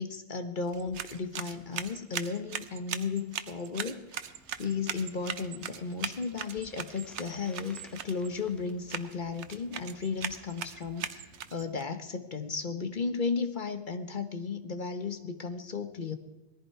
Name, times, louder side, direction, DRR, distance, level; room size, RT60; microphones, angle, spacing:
voice 1, 0.0-4.2 4.6-16.2, left 5 dB, 45° left, 9 dB, 1.1 m, -34 dB
sound 1, 0.6-11.8, right 8 dB, 80° right, 1.1 m, -40 dB
Bicycle, 4.2-11.7, equal, ahead, 1.3 m, -59 dB
20.0 x 14.5 x 4.7 m, 1.0 s
omnidirectional pair, 1.2 m